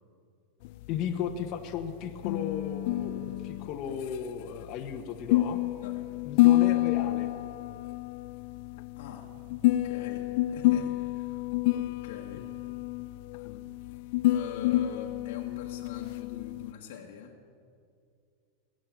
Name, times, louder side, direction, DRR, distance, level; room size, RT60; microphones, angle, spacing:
sound 1, 0.6-16.7, left 16 dB, 60° left, 0.3 m, -29 dB
voice 1, 0.9-5.6 6.2-7.3 12.3-12.4 13.4-13.6, left 8 dB, 45° left, 3 dB, 1.1 m, -35 dB
voice 2, 9.0-9.3 9.6-12.5 14.3-17.3, left 8 dB, 75° left, -2 dB, 1.5 m, -43 dB
20.0 x 7.7 x 8.9 m, 2.3 s
supercardioid pair, 145°, 0 cm